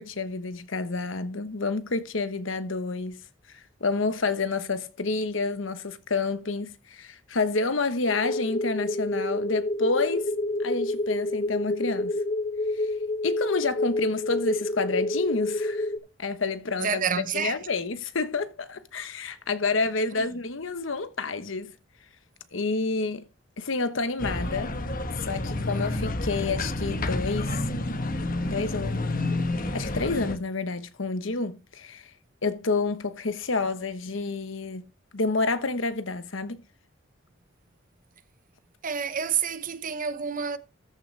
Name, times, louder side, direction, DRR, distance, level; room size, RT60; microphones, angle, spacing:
voice 1, 0.0-3.2 3.5-10.3 10.6-12.2 12.7-12.9 13.2-15.9 16.2-17.0 17.3-21.7 22.5-23.2 23.6-24.7 25.2-27.7 28.4-29.0 29.7-32.1 32.4-34.8 35.1-36.6, left 3 dB, 80° left, 1.1 m, -29 dB
sound 1, 8.1-16.0, left 1 dB, 30° left, 0.5 m, -28 dB
voice 2, 16.8-17.5 38.8-40.6, right 7 dB, 45° right, 0.8 m, -28 dB
sound 2, 24.2-30.4, left 2 dB, 45° left, 1.2 m, -29 dB
13.5 x 6.1 x 3.3 m
head